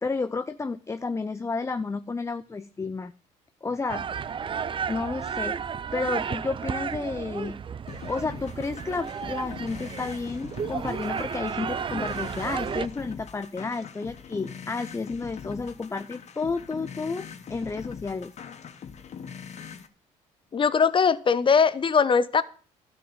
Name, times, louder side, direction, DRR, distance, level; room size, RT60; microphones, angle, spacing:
voice 1, 0.0-3.1 3.6-4.1 4.9-5.6 5.9-7.6 8.1-18.3, left 4 dB, 20° left, 11 dB, 0.6 m, -31 dB
sound 1, 3.9-12.9, right 7 dB, 35° right, 0.5 m, -33 dB
sound 2, 7.9-19.9, left 7 dB, 50° left, 1.4 m, -42 dB
voice 2, 20.5-22.4, left 6 dB, 35° left, 16 dB, 1.0 m, -21 dB
12.0 x 6.4 x 8.0 m, 0.40 s
supercardioid pair, 75°, 15 cm